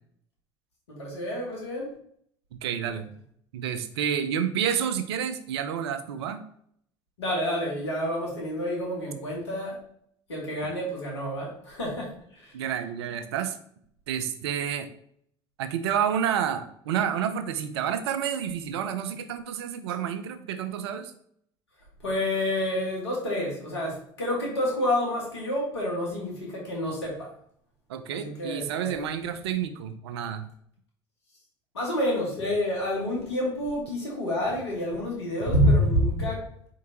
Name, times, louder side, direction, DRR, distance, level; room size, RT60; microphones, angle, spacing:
voice 1, 0.9-1.9 7.2-9.8 10.3-12.5 22.0-27.3 28.1-29.0 31.7-36.5, left 1 dB, 85° left, -2 dB, 1.6 m, -28 dB
voice 2, 2.6-3.1 3.5-6.4 12.5-13.6 14.1-14.9 15.6-21.1 27.9-30.5, right 8 dB, 75° right, 10 dB, 0.5 m, -29 dB
4.6 x 3.7 x 2.8 m, 0.67 s
hypercardioid pair, 70°, 14 cm